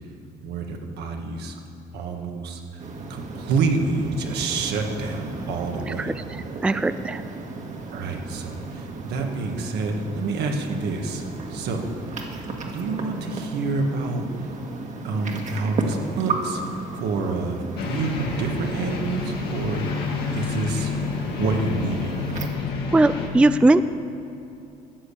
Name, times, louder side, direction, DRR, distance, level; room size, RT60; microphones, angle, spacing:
voice 1, 0.4-1.6 1.9-2.8 3.1-6.1 7.9-11.9 12.2-14.5 15.0-16.6 16.9-20.9 21.4-22.2, right 3 dB, 75° right, 3 dB, 1.7 m, -28 dB
sound 1, 2.8-22.5, right 3 dB, 45° right, 1.7 m, -34 dB
voice 2, 6.6-7.2 22.9-23.8, right 2 dB, 5° right, 12 dB, 0.3 m, -18 dB
sound 2, 17.8-23.3, left 4 dB, 70° left, 2.3 m, -29 dB
14.0 x 6.6 x 8.7 m, 2.8 s
cardioid pair, 110°, 17 cm